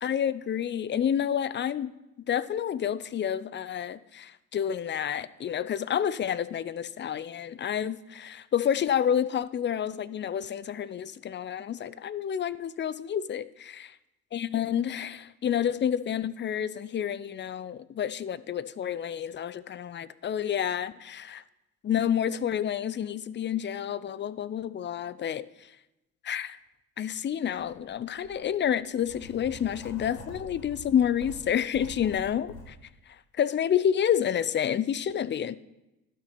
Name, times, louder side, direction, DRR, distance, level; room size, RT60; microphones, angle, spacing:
voice 1, 0.0-13.9 14.3-21.4 21.8-25.4 26.2-26.6 27.0-32.8 33.3-35.6, left 9 dB, 25° left, 0.5 m, -29 dB
Writing, 27.6-27.7 28.2-32.6, left 2 dB, 85° left, 1.8 m, -45 dB
11.5 x 6.2 x 5.9 m
hypercardioid pair, 55°, 43 cm